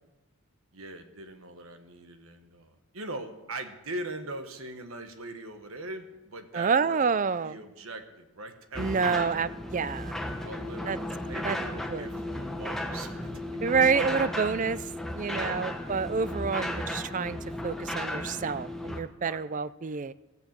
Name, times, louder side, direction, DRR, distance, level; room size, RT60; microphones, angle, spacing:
voice 1, 0.7-9.3 10.4-13.9 15.2-15.7 19.2-19.4, right 2 dB, 65° right, 1.4 m, -41 dB
voice 2, 6.5-7.6 8.8-10.2 10.9-11.0 11.4-11.6 11.9-12.1 13.6-17.4 17.6-20.1, right 5 dB, 35° right, 0.4 m, -28 dB
sound 1, 8.7-19.0, left 1 dB, ahead, 1.0 m, -35 dB
15.5 x 8.9 x 7.4 m
head